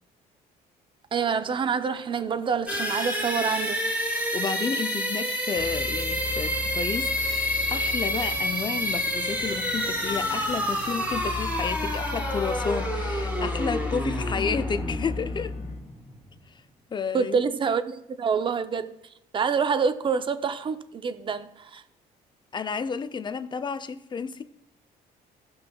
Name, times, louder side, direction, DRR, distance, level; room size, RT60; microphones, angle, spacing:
voice 1, 1.1-3.8 17.1-19.0 19.3-21.8, right 6 dB, 30° right, 0.6 m, -27 dB
sound 1, 2.7-16.4, equal, 5° right, 2.7 m, -29 dB
voice 2, 4.1-15.5 16.9-17.4 22.5-24.4, left 6 dB, 25° left, 0.6 m, -31 dB
sound 2, 5.5-15.9, left 4 dB, 45° left, 1.1 m, -35 dB
17.0 x 5.7 x 2.3 m
cardioid pair, 110°, 17 cm